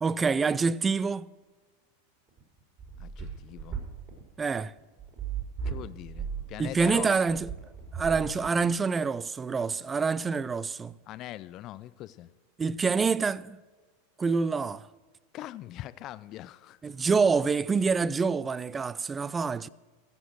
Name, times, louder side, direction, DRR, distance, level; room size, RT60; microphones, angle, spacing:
voice 1, 0.0-1.3 4.4-4.7 6.6-7.5 7.9-10.9 12.6-13.6 14.2-14.9 16.8-19.7, right 5 dB, 15° right, 0.4 m, -26 dB
sound 1, 2.3-8.8, right 6 dB, 35° right, 4.5 m, -37 dB
voice 2, 3.0-3.8 5.6-7.2 11.1-12.3 15.3-16.8, left 14 dB, 40° left, 0.4 m, -42 dB
15.0 x 7.2 x 6.3 m
supercardioid pair, 120°, 0 cm